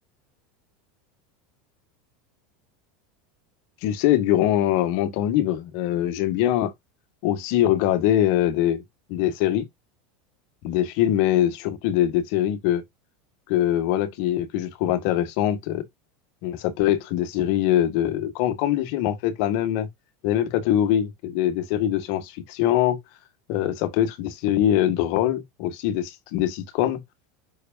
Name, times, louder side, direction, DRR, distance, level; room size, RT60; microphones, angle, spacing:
voice 1, 3.8-6.7 7.2-8.8 9.1-9.6 10.6-12.8 13.5-15.8 16.4-19.9 20.2-23.0 23.5-27.0, left 12 dB, 60° left, 1.7 m, -23 dB
6.8 x 6.5 x 2.6 m
hypercardioid pair, 85°, 0 cm